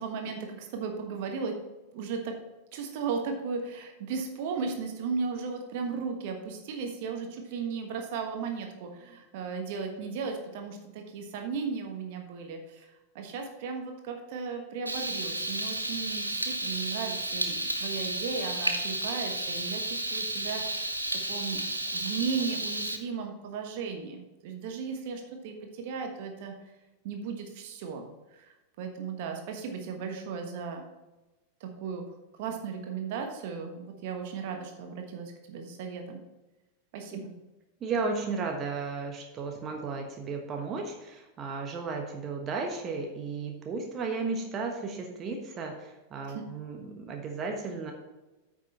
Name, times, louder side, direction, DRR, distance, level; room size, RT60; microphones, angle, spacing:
voice 1, 0.0-1.6 1.9-2.3 2.7-20.9 21.3-26.5 27.0-30.9 31.6-32.0 32.4-36.2 36.9-37.3 46.3-46.5, right 5 dB, 50° right, 4 dB, 1.3 m, -36 dB
Frying (food), 14.9-23.0, right 1 dB, 85° right, 0.7 m, -32 dB
voice 2, 37.8-47.9, right 4 dB, 30° right, 2 dB, 1.2 m, -34 dB
9.2 x 6.2 x 4.2 m, 1.1 s
figure-of-eight pair, 90°, 0 cm